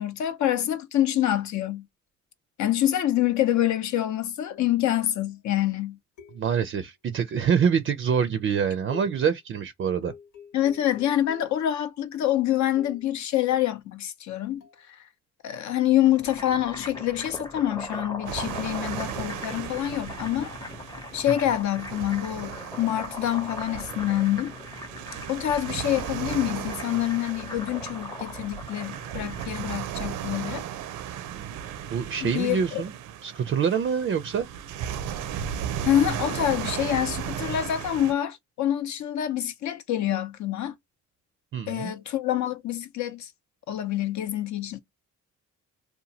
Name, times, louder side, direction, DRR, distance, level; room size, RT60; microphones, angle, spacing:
voice 1, 0.0-1.9 2.6-6.0 10.5-14.6 15.4-20.5 21.1-24.5 25.3-30.6 32.2-32.8 35.8-40.7 41.7-43.3 43.7-44.8, left 12 dB, 70° left, 0.7 m, -26 dB
sound 1, 5.0-5.3 6.2-6.8 7.6-8.1 8.9-9.4 10.0-11.7 12.8-13.2 14.6-14.8, left 8 dB, 90° left, 1.2 m, -47 dB
voice 2, 6.3-10.1 31.3-31.5 31.9-32.9 33.2-34.5 41.5-41.9, right 7 dB, 40° right, 0.4 m, -25 dB
sound 2, 15.9-29.8, left 1 dB, 15° left, 0.6 m, -40 dB
sound 3, 18.3-38.1, right 9 dB, 90° right, 0.5 m, -36 dB
2.8 x 2.2 x 2.7 m
cardioid pair, 90°, 30 cm